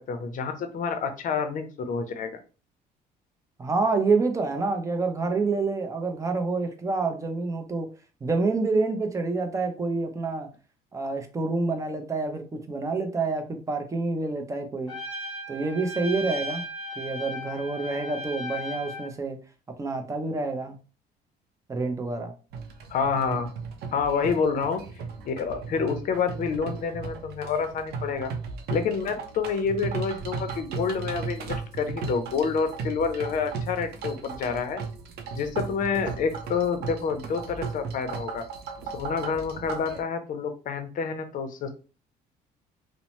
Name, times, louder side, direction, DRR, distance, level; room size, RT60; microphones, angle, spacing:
voice 1, 0.1-2.4 22.9-23.5 23.9-24.8 25.3-28.3 28.7-34.8 35.3-38.4 38.9-41.7, left 5 dB, 50° left, 8 dB, 0.6 m, -28 dB
voice 2, 3.6-7.9 8.2-10.5 10.9-14.9 15.5-16.7 17.0-19.4 19.8-20.8 21.7-22.3, right 3 dB, 20° right, 5 dB, 0.5 m, -27 dB
Trumpet, 14.9-19.1, left 1 dB, ahead, 1.4 m, -36 dB
sound 1, 22.5-40.0, right 5 dB, 70° right, 0.6 m, -36 dB
2.7 x 2.1 x 3.0 m, 0.35 s
cardioid pair, 110°, 17 cm